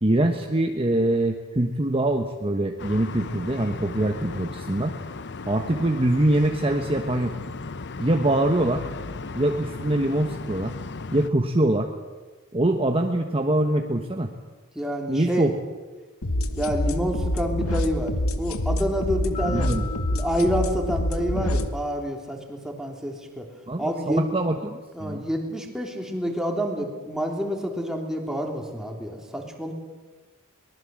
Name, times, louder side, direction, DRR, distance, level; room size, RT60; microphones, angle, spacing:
voice 1, 0.0-4.9 5.5-7.3 8.0-8.8 9.3-10.7 11.1-11.9 12.5-14.3 15.1-15.5 19.5-19.8 23.7-25.3, right 1 dB, 25° right, 4 dB, 1.3 m, -23 dB
sound 1, 2.8-11.3, left 3 dB, 55° left, 0.9 m, -36 dB
voice 2, 14.7-15.5 16.6-18.1 18.4-19.7 20.1-23.4 23.8-24.2 24.9-29.7, equal, ahead, 1 dB, 3.3 m, -28 dB
sound 2, 16.2-21.7, left 1 dB, 75° left, 1.3 m, -26 dB
sound 3, 19.3-21.9, left 8 dB, 30° left, 2.6 m, -42 dB
23.0 x 19.5 x 7.7 m, 1.3 s
head